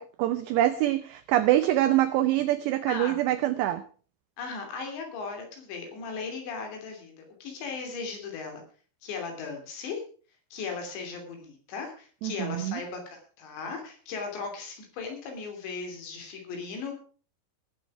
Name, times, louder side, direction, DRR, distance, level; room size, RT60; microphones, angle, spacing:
voice 1, 0.0-3.8 12.2-12.8, right 13 dB, 85° right, 11 dB, 2.4 m, -25 dB
voice 2, 4.4-7.1 7.4-8.6 9.0-10.0 10.5-16.9, left 4 dB, 60° left, 4 dB, 4.9 m, -37 dB
19.0 x 8.5 x 4.9 m, 0.40 s
omnidirectional pair, 5.9 m